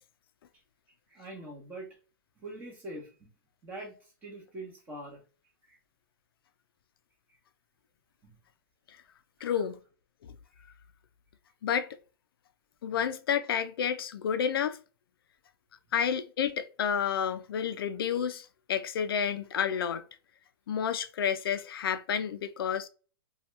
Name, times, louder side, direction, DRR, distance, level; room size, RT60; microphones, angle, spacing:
voice 1, 1.1-1.9 2.4-3.1 3.6-4.0 4.2-5.2 5.7-5.8, right 1 dB, 15° right, 0.9 m, -43 dB
voice 2, 9.4-9.8 11.6-11.9 12.8-14.8 15.9-20.0 20.7-22.9, left 8 dB, 75° left, 0.4 m, -30 dB
2.8 x 2.3 x 3.1 m
hypercardioid pair, 155°, 12 cm